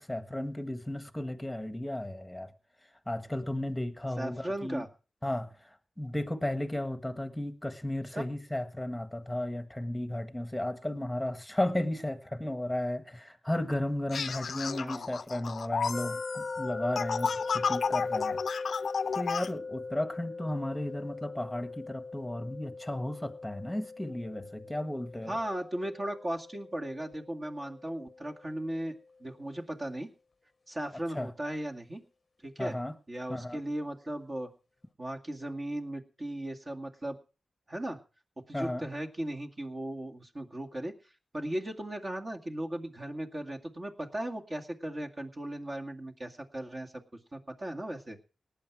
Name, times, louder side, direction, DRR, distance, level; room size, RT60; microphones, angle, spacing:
voice 1, 0.0-2.5 3.1-4.8 5.2-5.7 6.0-18.4 19.1-25.4 31.1-31.3 32.6-32.9 33.3-33.6 38.5-38.9, left 1 dB, 5° left, 1.6 m, -34 dB
voice 2, 4.2-4.9 8.2-8.3 14.7-15.1 25.3-28.9 29.2-30.1 30.7-32.0 32.4-32.8 33.1-34.5 35.0-37.2 37.7-38.0 38.5-40.9 41.3-46.9 47.3-48.2, right 1 dB, 30° right, 2.2 m, -37 dB
sound 1, 14.1-19.5, left 6 dB, 60° left, 0.6 m, -33 dB
sound 2, 15.9-28.8, left 3 dB, 35° left, 0.9 m, -40 dB
19.0 x 8.8 x 4.8 m
wide cardioid pair, 95°, 0 cm